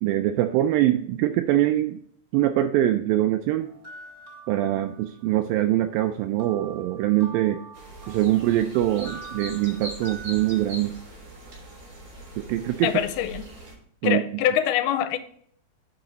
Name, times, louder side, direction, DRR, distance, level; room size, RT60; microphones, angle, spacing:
voice 1, 0.0-2.0 2.3-3.7 4.5-7.6 8.1-10.9 12.4-12.9 14.0-14.2, right 14 dB, 85° right, 2.1 m, -23 dB
sound 1, 3.6-5.4 6.4-10.7, right 3 dB, 35° right, 1.6 m, -45 dB
sound 2, 7.7-13.7, right 1 dB, 50° right, 4.9 m, -41 dB
voice 2, 12.8-13.4 14.0-15.2, left 11 dB, 90° left, 2.6 m, -24 dB
10.5 x 4.9 x 3.9 m
omnidirectional pair, 4.5 m